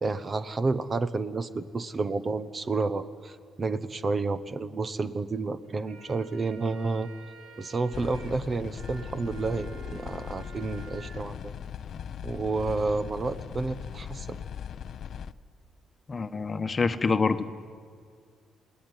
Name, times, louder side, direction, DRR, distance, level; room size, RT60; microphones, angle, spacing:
voice 1, 0.0-7.1 7.6-11.5 12.2-14.4, right 3 dB, 35° right, 12 dB, 1.1 m, -30 dB
sound 1, 5.6-11.2, right 4 dB, 80° right, 2.8 m, -50 dB
sound 2, 7.9-15.3, left 8 dB, 65° left, 0.6 m, -39 dB
voice 2, 16.1-17.4, left 4 dB, 35° left, 9 dB, 1.2 m, -26 dB
28.5 x 19.5 x 9.9 m, 2.1 s
cardioid pair, 90°, 0 cm